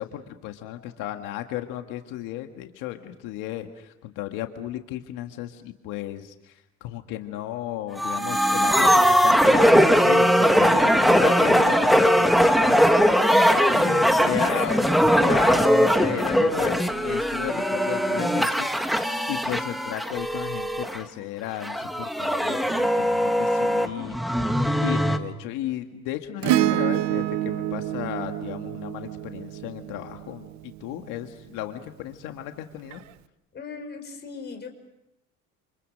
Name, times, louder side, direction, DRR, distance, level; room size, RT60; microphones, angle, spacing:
voice 1, 0.0-12.8 13.4-24.2 24.8-33.0, left 13 dB, 90° left, 6 dB, 1.8 m, -34 dB
sound 1, 8.0-21.0 21.6-25.2, equal, ahead, 1.4 m, -20 dB
voice 2, 11.1-12.6 13.1-13.8 33.5-34.7, left 5 dB, 35° left, 6 dB, 5.1 m, -37 dB
Acoustic guitar / Strum, 26.4-31.0 32.9-33.0, right 13 dB, 65° right, 1.1 m, -27 dB
29.0 x 28.5 x 6.5 m, 0.87 s
cardioid pair, 145°, 31 cm